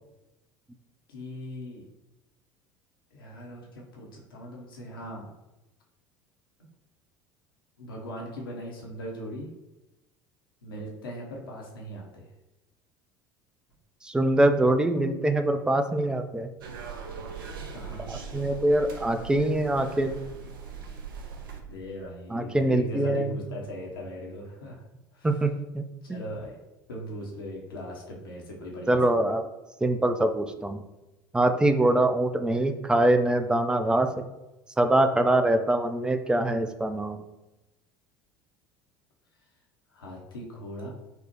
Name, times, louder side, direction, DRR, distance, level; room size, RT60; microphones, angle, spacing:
voice 1, 1.1-1.8 3.1-5.3 7.8-9.5 10.6-12.3 17.6-18.1 21.6-24.8 25.1-25.4 26.0-26.6 26.9-29.2 39.9-40.9, equal, 80° left, -2 dB, 0.7 m, -39 dB
voice 2, 14.0-16.5 18.1-20.1 22.3-23.3 25.2-25.8 28.9-29.4 29.8-30.8 31.3-34.2 34.8-37.2, right 1 dB, 5° right, 8 dB, 0.3 m, -24 dB
sound 1, 16.6-21.6, right 5 dB, 70° right, 0.4 m, -40 dB
4.3 x 2.0 x 2.8 m, 1.0 s
figure-of-eight pair, 70°, 12 cm